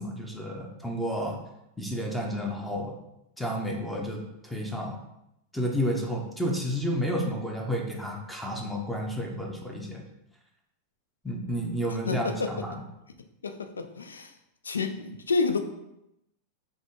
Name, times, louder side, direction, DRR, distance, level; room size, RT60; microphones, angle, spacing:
voice 1, 0.0-1.4 1.8-3.0 3.4-5.0 5.5-10.0 11.2-12.8, equal, 5° left, 0 dB, 0.6 m, -31 dB
voice 2, 12.1-12.5 13.4-14.3 14.6-15.6, left 4 dB, 70° left, 7 dB, 0.4 m, -29 dB
5.0 x 2.1 x 3.6 m, 0.85 s
figure-of-eight pair, 90°, 0 cm